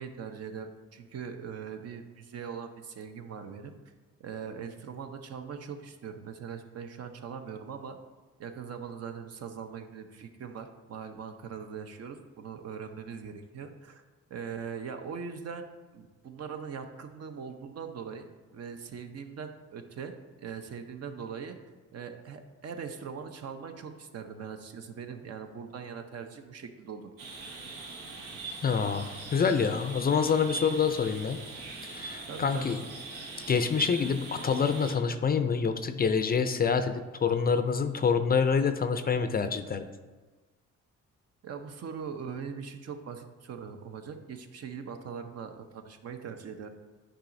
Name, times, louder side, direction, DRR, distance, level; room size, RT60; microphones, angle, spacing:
voice 1, 0.0-3.7 4.2-8.0 8.4-14.0 14.3-15.7 15.9-21.6 21.9-27.1 32.3-32.7 41.4-46.8, right 6 dB, 55° right, 7 dB, 0.7 m, -41 dB
sound 1, 27.2-35.0, right 4 dB, 90° right, 1.1 m, -41 dB
voice 2, 28.6-31.4 31.8-32.8 33.5-39.9, left 6 dB, 30° left, 9 dB, 0.4 m, -27 dB
10.0 x 4.9 x 2.6 m, 1.3 s
cardioid pair, 90°, 30 cm